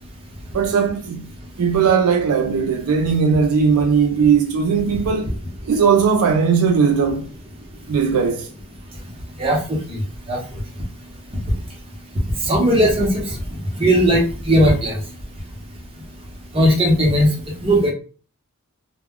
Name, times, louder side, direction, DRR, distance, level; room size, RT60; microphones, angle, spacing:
voice 1, 0.5-1.3 1.6-5.4 5.6-7.3 7.9-8.5, right 6 dB, 75° right, 0.4 m, -18 dB
voice 2, 9.4-10.0 10.3-10.4 12.4-13.3 13.7-15.0 16.5-17.3 17.6-17.9, equal, 25° right, 0.8 m, -17 dB
2.2 x 2.1 x 3.5 m
head